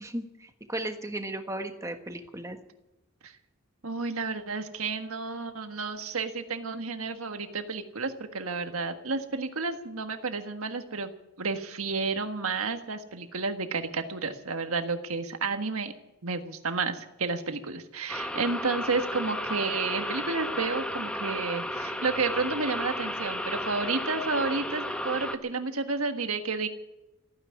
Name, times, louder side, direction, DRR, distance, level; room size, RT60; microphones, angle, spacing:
voice 1, 0.0-2.6, right 1 dB, 15° right, 6 dB, 1.4 m, -35 dB
voice 2, 3.8-11.1 11.4-15.9 16.2-26.7, right 4 dB, 85° right, 7 dB, 1.6 m, -31 dB
sound 1, 18.1-25.4, left 1 dB, 5° left, 0.9 m, -33 dB
15.0 x 9.7 x 9.7 m, 0.93 s
head